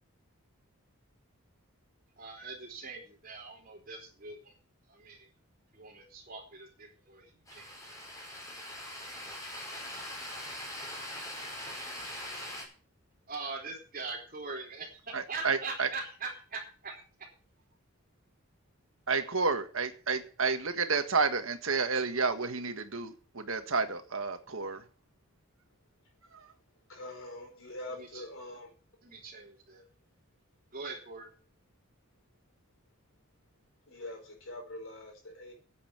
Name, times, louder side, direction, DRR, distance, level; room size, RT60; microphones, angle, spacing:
voice 1, 2.2-4.5 4.9-5.3 5.7-7.7 13.3-17.3 27.9-28.2 29.0-29.9 30.7-31.3, right 4 dB, 40° right, 3.5 m, -42 dB
sound 1, 7.5-12.7, left 1 dB, 15° left, 4.8 m, -42 dB
voice 2, 15.1-15.9 19.1-24.8, right 4 dB, 65° right, 1.6 m, -30 dB
voice 3, 26.9-28.7 33.9-35.5, left 1 dB, 60° left, 4.9 m, -44 dB
10.0 x 8.7 x 7.5 m
head